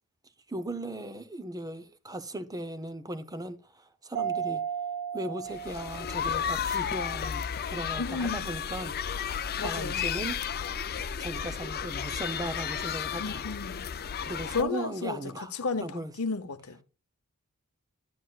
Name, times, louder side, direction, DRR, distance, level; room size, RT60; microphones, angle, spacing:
voice 1, 0.5-4.6 5.1-10.4 11.2-13.4 14.2-15.5 15.8-16.1, right 1 dB, 15° right, 0.7 m, -38 dB
Mallet percussion, 4.2-6.7, right 8 dB, 70° right, 0.7 m, -34 dB
sound 1, 5.5-14.6, left 8 dB, 45° left, 0.5 m, -33 dB
voice 2, 8.0-8.5 9.6-10.0 13.2-13.9 14.5-16.8, left 4 dB, 70° left, 0.9 m, -33 dB
11.0 x 7.8 x 2.4 m
head